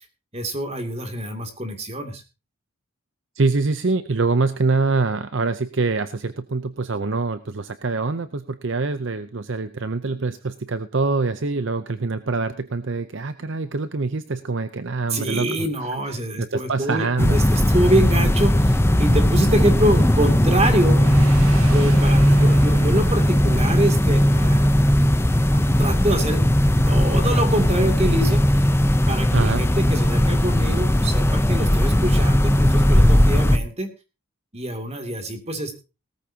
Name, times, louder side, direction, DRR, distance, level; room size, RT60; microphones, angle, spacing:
voice 1, 0.3-2.2 15.1-21.0 21.7-24.7 25.8-26.4 26.8-28.4 29.1-33.9 34.5-35.8, right 1 dB, 30° right, 6 dB, 2.6 m, -25 dB
voice 2, 3.4-15.7 16.4-17.4 29.3-29.6, right 3 dB, 55° right, 12 dB, 0.7 m, -24 dB
sound 1, 17.2-33.6, equal, 10° left, 0.7 m, -18 dB
sound 2, 20.7-24.9, right 4 dB, 80° right, 1.7 m, -36 dB
18.0 x 13.5 x 2.8 m, 0.31 s
head